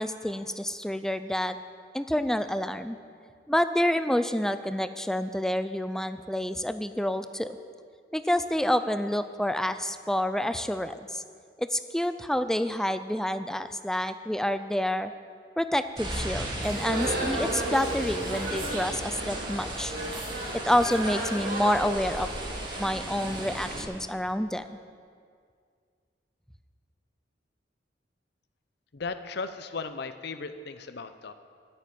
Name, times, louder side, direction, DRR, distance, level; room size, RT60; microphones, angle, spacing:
voice 1, 0.0-1.6 1.9-3.0 3.5-7.6 8.1-11.2 11.6-15.1 15.6-19.9 20.6-22.3 22.8-24.6, left 1 dB, 5° left, 11 dB, 0.4 m, -28 dB
sound 1, 16.0-23.8, right 1 dB, 25° right, 2.3 m, -36 dB
sound 2, 16.6-23.6, right 1 dB, 55° right, 2.7 m, -34 dB
voice 2, 28.9-31.3, left 4 dB, 65° left, 10 dB, 0.6 m, -36 dB
9.8 x 9.0 x 9.3 m, 2.1 s
head